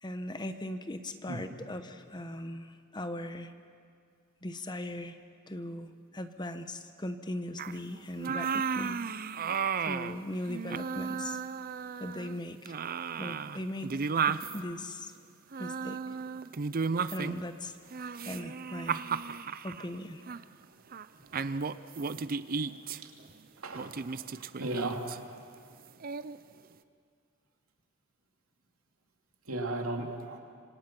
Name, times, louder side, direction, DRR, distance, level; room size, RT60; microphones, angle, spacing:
voice 1, 0.0-3.5 4.4-5.2 5.5-9.0 9.8-11.4 12.0-12.8 13.1-13.9 14.2-15.1 15.6-16.0 17.1-17.8 18.2-19.0 19.6-20.2, left 1 dB, 20° left, 8 dB, 1.0 m, -39 dB
sound 1, 7.6-7.8 8.2-10.2 10.5-12.4 12.7-14.6 15.5-17.5 17.9-19.9 20.3-20.4 20.9-21.1 21.3-23.0 23.8-25.2 26.0-26.4, right 6 dB, 45° right, 0.5 m, -34 dB
voice 2, 24.4-25.0 29.5-30.4, right 2 dB, 85° right, 2 dB, 2.7 m, -35 dB
26.5 x 25.5 x 6.0 m, 2.1 s
head